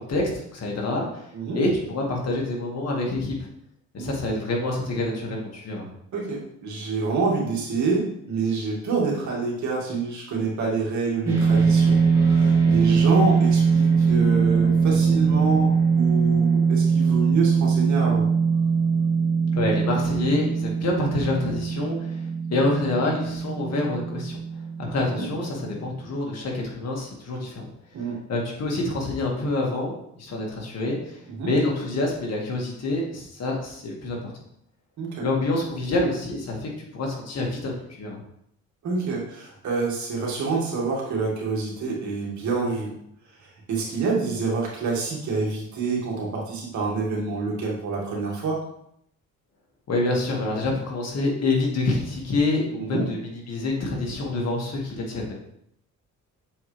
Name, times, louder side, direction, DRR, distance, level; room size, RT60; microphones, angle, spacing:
voice 1, 0.0-1.2 1.5-3.5 3.9-5.9 19.5-24.4 24.8-27.7 28.3-34.3 35.2-38.2 49.9-55.3, left 2 dB, 55° left, -1 dB, 2.0 m, -27 dB
voice 2, 6.1-18.3 25.2-25.3 27.9-28.2 31.3-31.5 35.0-35.3 38.8-42.9 43.4-48.6 52.8-53.0, right 4 dB, 70° right, -2 dB, 2.2 m, -27 dB
sound 1, 11.3-25.7, right 5 dB, 10° right, 2.6 m, -21 dB
7.0 x 4.7 x 3.4 m, 0.73 s
cardioid pair, 90°, 30 cm